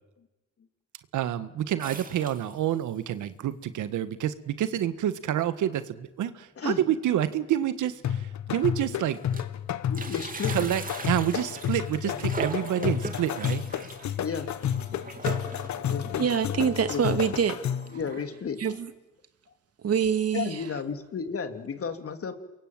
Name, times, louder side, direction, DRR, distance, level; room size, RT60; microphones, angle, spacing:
voice 1, 1.1-9.2 10.5-13.6, right 11 dB, 80° right, 1.5 m, -28 dB
sound 1, 1.8-3.0 3.5-3.6 3.8-3.9 4.8-4.9 5.3-5.5 5.8-5.9 7.2-7.3 7.9-8.0 8.4-9.6 9.8-18.2, right 3 dB, 30° right, 3.2 m, -40 dB
sound 2, 8.0-18.0, left 9 dB, 65° left, 1.4 m, -31 dB
voice 2, 9.9-10.7 12.0-12.2 12.8-12.9 14.2-14.5 15.9-17.0 17.9-18.6 20.3-22.3, left 6 dB, 50° left, 3.0 m, -33 dB
voice 3, 16.2-17.6 18.6-18.9 19.8-20.6, right 7 dB, 55° right, 2.5 m, -25 dB
28.5 x 22.5 x 9.1 m
cardioid pair, 90°, 30 cm